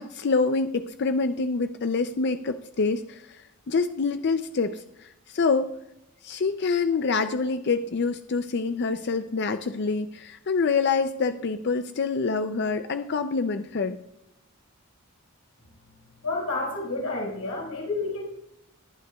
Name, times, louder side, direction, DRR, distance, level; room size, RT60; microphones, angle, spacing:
voice 1, 0.0-5.8 6.2-14.0, left 4 dB, 50° left, 9 dB, 0.5 m, -26 dB
voice 2, 16.2-18.2, left 2 dB, 80° left, -1 dB, 4.6 m, -30 dB
20.5 x 9.6 x 2.3 m, 0.83 s
head